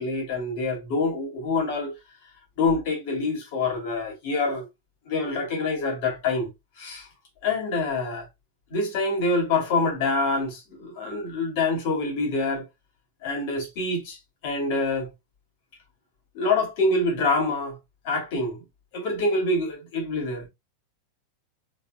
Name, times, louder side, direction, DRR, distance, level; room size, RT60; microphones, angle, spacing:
voice 1, 0.0-1.9 2.6-4.7 5.1-6.5 6.8-7.1 7.4-8.3 8.7-12.7 13.2-15.1 16.3-17.8 18.0-18.6 18.9-20.5, left 3 dB, 50° left, 2.3 m, -26 dB
4.8 x 4.2 x 2.3 m
figure-of-eight pair, 90°, 0 cm